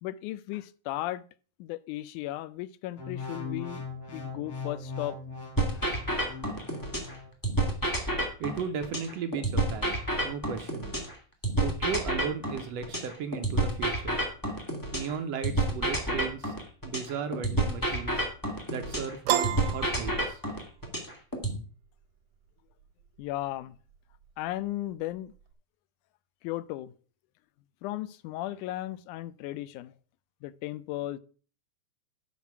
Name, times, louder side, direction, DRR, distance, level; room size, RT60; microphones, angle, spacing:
voice 1, 0.0-1.2 1.6-5.2 23.2-23.8 24.4-25.3 26.4-26.9 27.8-29.9 30.4-31.2, left 15 dB, 85° left, 2.1 m, -35 dB
sound 1, 3.0-7.3 7.8-8.1, left 4 dB, 60° left, 4.6 m, -40 dB
sound 2, 5.6-7.1 7.4-11.1 11.4-15.1 15.4-19.1 19.4-21.6, right 1 dB, 10° left, 1.5 m, -29 dB
voice 2, 8.4-10.9 11.6-14.2 14.9-16.5 16.8-18.3 18.7-20.4, right 6 dB, 70° right, 1.6 m, -36 dB
Piano, 19.3-20.8, right 10 dB, 85° right, 2.3 m, -30 dB
9.4 x 5.9 x 5.9 m
omnidirectional pair, 3.5 m